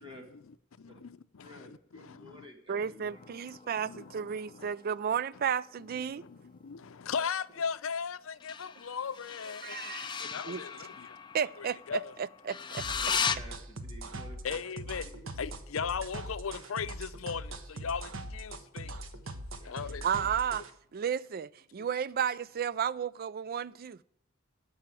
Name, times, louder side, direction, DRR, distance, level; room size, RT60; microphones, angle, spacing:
voice 1, 0.3-2.5 2.8-3.1 3.8-4.7 6.0-9.9 10.3-11.2 11.6-12.1 14.4-15.1 15.4-18.9 19.6-20.0, left 6 dB, 85° left, 0.6 m, -38 dB
voice 2, 1.4-3.2 3.6-3.8 10.0-10.3 13.0-14.6 15.1-15.2 19.5-19.7 20.2-20.4, equal, 25° right, 1.8 m, -51 dB
voice 3, 2.7-6.2 9.6-10.2 10.5-10.6 11.3-12.9 20.0-20.6 20.9-24.0, right 7 dB, 45° right, 0.4 m, -33 dB
sound 1, 3.0-6.1 8.4-13.4, left 6 dB, 25° left, 0.5 m, -38 dB
sound 2, 12.8-20.7, right 1 dB, 75° right, 1.2 m, -41 dB
13.5 x 5.7 x 8.9 m
head